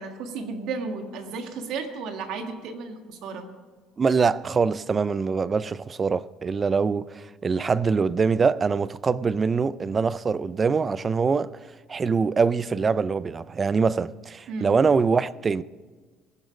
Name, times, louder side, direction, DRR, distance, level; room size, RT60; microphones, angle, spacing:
voice 1, 0.0-3.5 14.5-14.7, right 4 dB, 60° right, 1.7 m, -33 dB
voice 2, 4.0-11.5 11.9-15.6, right 5 dB, 20° right, 0.3 m, -23 dB
21.0 x 7.8 x 5.1 m
cardioid pair, 145°, 0 cm